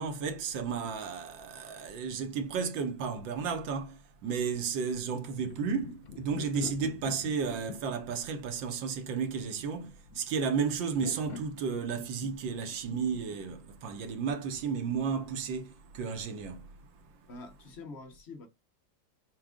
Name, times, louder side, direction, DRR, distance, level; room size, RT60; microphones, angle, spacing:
voice 1, 0.0-16.8, right 6 dB, 75° right, 1.6 m, -33 dB
sound 1, 5.0-14.7, left 6 dB, 85° left, 0.6 m, -47 dB
voice 2, 17.3-18.5, left 3 dB, 45° left, 1.0 m, -45 dB
6.1 x 2.4 x 3.6 m
omnidirectional pair, 2.1 m